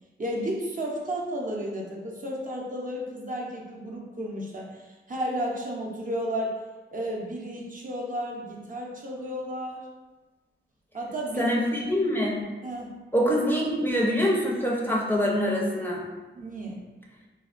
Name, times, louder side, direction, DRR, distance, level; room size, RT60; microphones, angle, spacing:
voice 1, 0.2-6.6 6.9-9.8 10.9-11.6 12.6-12.9 16.4-16.9, equal, 40° right, -2 dB, 0.5 m, -33 dB
voice 2, 11.4-12.5 13.1-16.0, equal, 10° left, -4 dB, 0.5 m, -25 dB
3.3 x 2.1 x 2.4 m, 1.2 s
cardioid pair, 80°, 21 cm